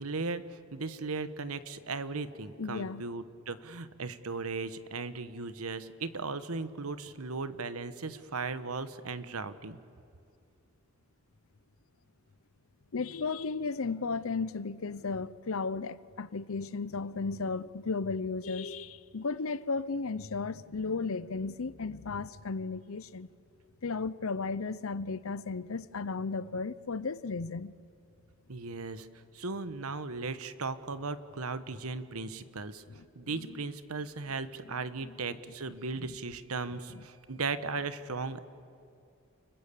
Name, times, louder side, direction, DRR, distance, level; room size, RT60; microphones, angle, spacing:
voice 1, 0.0-9.8 28.5-29.1 29.3-32.8 33.1-38.4, right 4 dB, 85° right, 1.2 m, -37 dB
voice 2, 2.6-3.0 12.9-23.3 23.8-27.7 32.9-33.5 35.0-35.1 36.9-37.0, left 4 dB, 70° left, 0.7 m, -35 dB
29.5 x 21.5 x 8.5 m
head